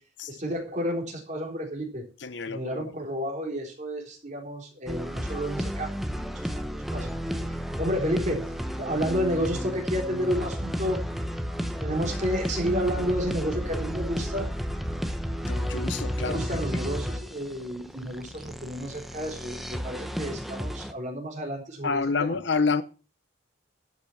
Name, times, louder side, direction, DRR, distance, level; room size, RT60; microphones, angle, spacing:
voice 1, 0.3-2.0 2.5-7.1 7.4-8.4 8.8-11.0 11.8-14.5 16.2-22.0 22.3-22.4, equal, 35° right, 3.6 m, -31 dB
voice 2, 2.2-2.9 15.5-16.4 21.8-22.8, left 4 dB, 60° left, 0.7 m, -28 dB
sound 1, 4.9-20.9, equal, ahead, 0.8 m, -32 dB
12.0 x 6.1 x 7.1 m
head